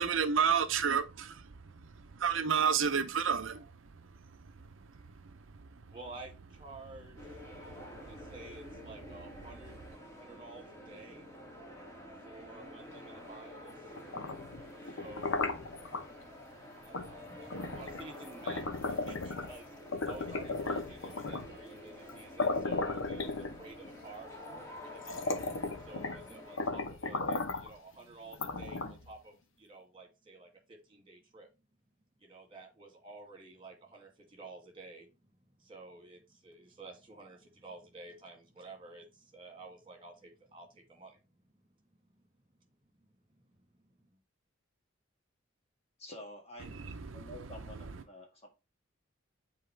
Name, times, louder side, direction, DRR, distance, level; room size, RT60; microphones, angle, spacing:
voice 1, 0.0-1.4 2.2-3.7 47.1-47.2, right 7 dB, 70° right, 0.6 m, -29 dB
voice 2, 5.9-9.7 10.1-11.3 12.2-13.8 14.8-15.5 16.8-25.4 25.8-31.5 32.2-35.2 35.6-41.2 41.5-41.6 42.1-42.2 43.0-43.9, right 3 dB, 25° right, 2.2 m, -51 dB
sound 1, 7.2-26.7, left 1 dB, 15° left, 2.3 m, -49 dB
sound 2, 14.0-16.0 16.9-17.1 17.5-19.6 19.9-21.6 22.1-22.2 22.4-23.9 24.5-24.6 25.0-26.3 26.6-27.7 28.3-29.1, left 3 dB, 75° left, 0.9 m, -35 dB
voice 3, 46.0-48.5, left 1 dB, 30° left, 1.9 m, -49 dB
7.7 x 4.2 x 3.2 m
head